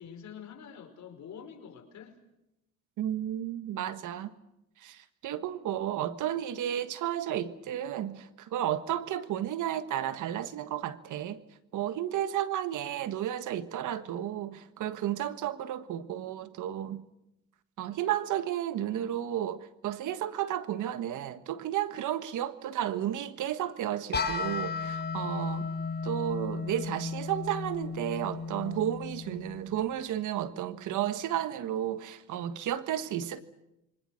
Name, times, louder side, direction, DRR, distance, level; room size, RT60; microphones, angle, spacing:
voice 1, 0.0-2.2, left 7 dB, 65° left, 5.1 m, -46 dB
voice 2, 3.0-4.3 4.8-11.4 11.7-17.0 17.8-25.7 26.0-33.4, right 11 dB, 80° right, 1.5 m, -32 dB
sound 1, 24.1-29.9, left 4 dB, 35° left, 3.6 m, -35 dB
27.5 x 24.5 x 6.5 m
cardioid pair, 90°, 30 cm